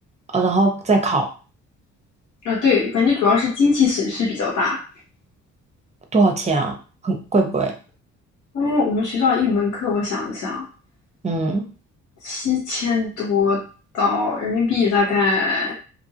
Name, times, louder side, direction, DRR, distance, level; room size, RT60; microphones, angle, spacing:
voice 1, 0.3-1.3 6.1-6.8 7.0-7.7 11.2-11.7, right 3 dB, 20° right, 3 dB, 0.7 m, -20 dB
voice 2, 2.4-4.8 8.5-10.7 12.2-13.6 13.9-15.7, left 5 dB, 80° left, -5 dB, 1.3 m, -20 dB
2.8 x 2.4 x 2.8 m, 0.36 s
cardioid pair, 90°, 30 cm